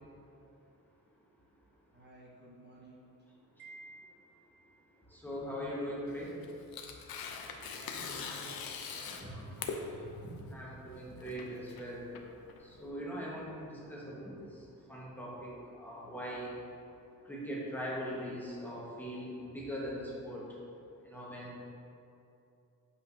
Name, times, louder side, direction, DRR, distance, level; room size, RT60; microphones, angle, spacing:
voice 1, 1.9-3.1 7.7-8.6 8.9-9.7, right 1 dB, 30° right, -5 dB, 1.0 m, -54 dB
Wind chime, 3.6-5.0, right 2 dB, 75° right, 0.7 m, -54 dB
voice 2, 5.1-6.4 8.2-8.6 8.8-9.0 9.2-12.0 12.6-16.5 17.2-20.4 21.0-21.6, equal, 5° left, -6 dB, 1.3 m, -41 dB
Tearing, 6.1-12.9, left 5 dB, 80° left, 0.7 m, -43 dB
7.9 x 5.0 x 2.7 m, 2.6 s
cardioid pair, 105°, 36 cm